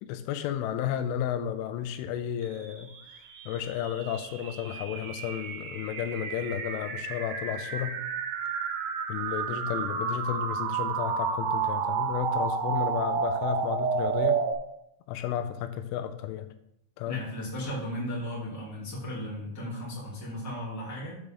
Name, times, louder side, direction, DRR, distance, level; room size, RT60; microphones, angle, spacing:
voice 1, 0.0-2.9 3.5-8.0 9.1-14.4 15.1-16.5 17.0-17.2, left 10 dB, 85° left, 10 dB, 3.1 m, -32 dB
sound 1, 2.7-14.5, right 6 dB, 75° right, 3.2 m, -31 dB
voice 2, 17.0-21.2, equal, 5° left, -7 dB, 1.8 m, -35 dB
7.9 x 7.9 x 3.8 m, 0.78 s
omnidirectional pair, 5.5 m